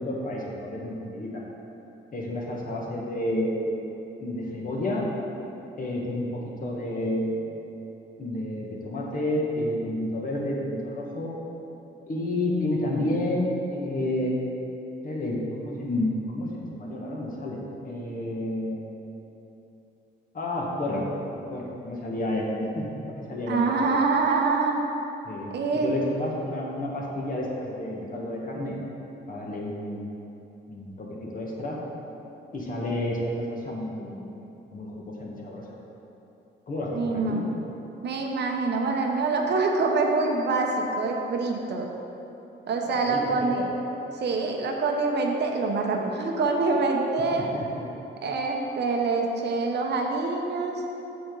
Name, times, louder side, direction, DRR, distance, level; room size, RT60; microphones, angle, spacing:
voice 1, 0.0-1.4 2.1-3.8 4.2-5.0 5.8-7.7 8.2-11.3 12.1-14.4 15.0-19.0 20.3-21.0 21.5-23.8 25.2-28.8 29.3-30.1 30.7-31.8 32.5-34.3 34.7-35.6 36.7-37.4 42.8-43.7 47.3-47.9, left 1 dB, 45° left, -3 dB, 1.6 m, -30 dB
voice 2, 23.5-24.8 25.5-26.0 36.9-37.5 38.0-41.9 42.7-43.7 44.1-47.5 48.2-50.8, right 3 dB, 60° right, 1 dB, 1.0 m, -25 dB
7.7 x 6.9 x 4.0 m, 3.0 s
cardioid pair, 90°, 20 cm